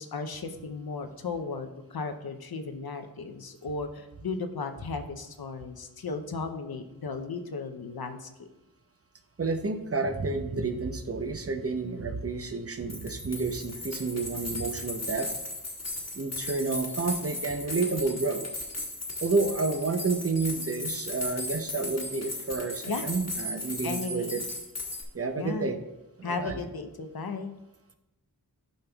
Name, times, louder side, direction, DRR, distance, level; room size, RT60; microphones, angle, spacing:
voice 1, 0.0-8.3 22.9-23.1 23.8-24.4 25.4-25.7 26.2-27.5, left 4 dB, 70° left, 7 dB, 0.7 m, -35 dB
voice 2, 9.4-15.3 16.1-18.5 19.2-24.4 25.1-25.8 26.2-26.6, right 3 dB, 35° right, 7 dB, 0.7 m, -30 dB
sound 1, 12.9-25.0, left 2 dB, 40° left, 1.4 m, -36 dB
11.5 x 5.3 x 2.3 m, 0.97 s
wide cardioid pair, 45°, 39 cm